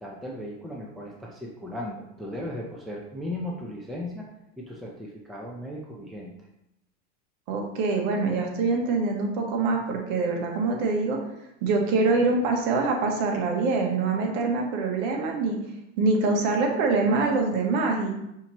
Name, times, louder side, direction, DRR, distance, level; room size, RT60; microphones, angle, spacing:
voice 1, 0.0-4.3 4.6-6.3, left 1 dB, ahead, -2 dB, 0.4 m, -36 dB
voice 2, 7.5-11.2 11.6-15.6 16.0-18.1, right 3 dB, 70° right, 2 dB, 1.1 m, -24 dB
5.6 x 2.9 x 2.9 m, 0.84 s
supercardioid pair, 105°, 40 cm